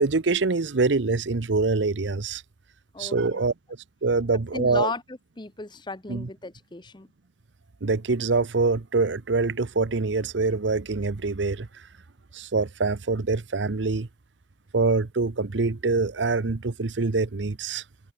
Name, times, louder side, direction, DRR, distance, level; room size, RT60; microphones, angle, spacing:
voice 1, 0.0-2.4 3.0-3.5 4.0-4.9 6.1-6.3 7.8-11.7 12.3-14.1 14.7-17.8, right 3 dB, 85° right, 0.8 m, -25 dB
voice 2, 2.9-3.4 4.5-7.1, left 3 dB, 25° left, 1.0 m, -35 dB
head